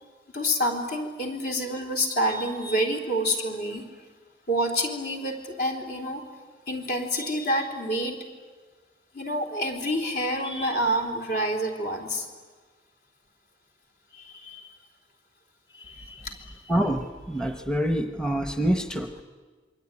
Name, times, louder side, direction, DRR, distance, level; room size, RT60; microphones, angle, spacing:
voice 1, 0.3-3.8 4.5-6.3 6.7-8.3 9.1-12.3 14.1-14.7 15.7-16.6, equal, 55° left, 3 dB, 3.7 m, -28 dB
voice 2, 16.7-19.2, right 1 dB, 5° left, 7 dB, 0.9 m, -26 dB
26.5 x 22.5 x 9.7 m, 1.4 s
head